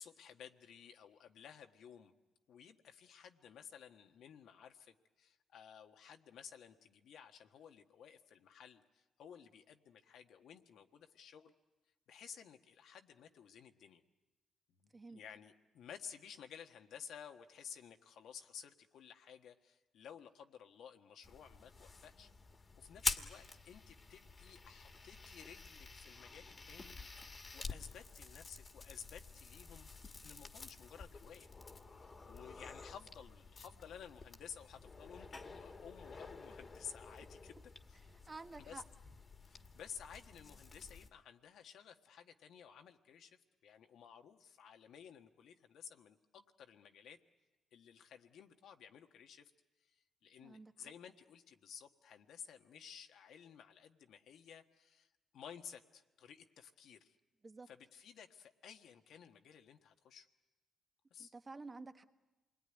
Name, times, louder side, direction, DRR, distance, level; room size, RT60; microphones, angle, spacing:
voice 1, 0.0-2.1 2.5-11.5 12.1-14.0 14.7-22.3 22.8-29.9 30.2-31.5 32.0-38.0 38.6-38.8 39.4-47.2 47.7-49.5 49.8-57.2 57.7-60.3 61.1-61.3, left 8 dB, 75° left, 5 dB, 1.5 m, -55 dB
sound 1, 21.2-41.1, left 3 dB, 30° left, 1.8 m, -48 dB
voice 2, 38.3-38.8 50.4-50.7 57.4-57.7 61.2-62.0, right 3 dB, 25° right, 7 dB, 1.4 m, -50 dB
27.5 x 21.0 x 9.9 m, 1.1 s
cardioid pair, 90°, 0 cm